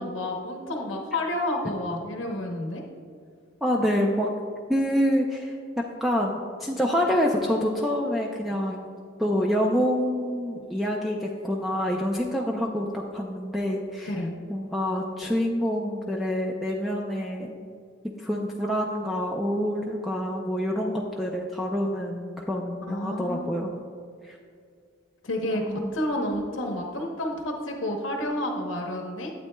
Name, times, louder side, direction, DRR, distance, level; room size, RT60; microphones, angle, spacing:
voice 1, 0.0-2.8 14.1-14.3 22.9-23.7 25.2-29.3, left 1 dB, 80° left, 2 dB, 0.9 m, -30 dB
voice 2, 3.6-4.3 4.7-8.8 9.2-14.1 14.5-17.6 18.0-23.8 24.2-24.4 25.5-25.9, equal, ahead, -1 dB, 0.4 m, -27 dB
12.0 x 8.2 x 2.2 m, 2.2 s
head